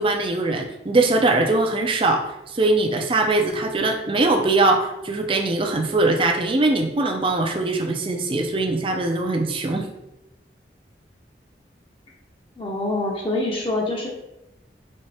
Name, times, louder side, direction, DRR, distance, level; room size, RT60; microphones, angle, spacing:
voice 1, 0.0-9.9, right 2 dB, 30° right, 3 dB, 0.5 m, -21 dB
voice 2, 12.6-14.1, left 2 dB, 30° left, -1 dB, 0.8 m, -25 dB
4.2 x 3.2 x 3.3 m, 0.90 s
head